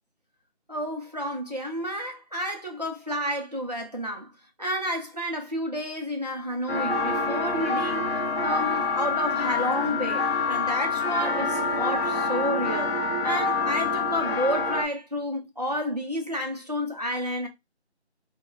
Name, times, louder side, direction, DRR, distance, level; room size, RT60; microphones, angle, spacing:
voice 1, 0.7-4.3 4.6-8.0 8.4-12.9 13.2-17.5, equal, 40° right, 0.5 m, -30 dB
sound 1, 6.7-14.8, left 4 dB, 60° left, 0.7 m, -26 dB
2.2 x 2.2 x 3.1 m
figure-of-eight pair, 170°, 34 cm